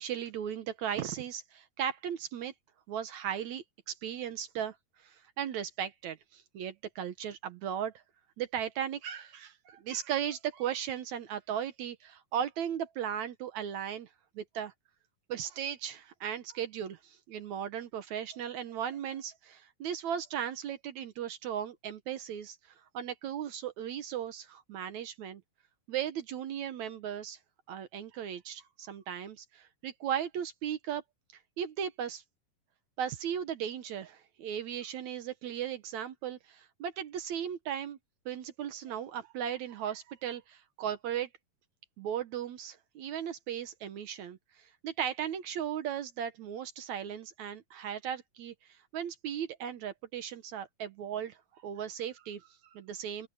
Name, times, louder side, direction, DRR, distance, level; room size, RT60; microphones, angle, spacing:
voice 1, 0.0-2.5 2.9-4.8 5.0-7.9 8.4-14.1 14.4-14.7 15.3-22.6 22.9-25.4 25.9-27.4 27.7-31.0 31.6-32.2 33.0-38.0 38.3-41.3 42.0-48.5 48.9-51.4 51.6-53.3, right 9 dB, 65° right, 2.1 m, -37 dB
open air
omnidirectional pair, 3.9 m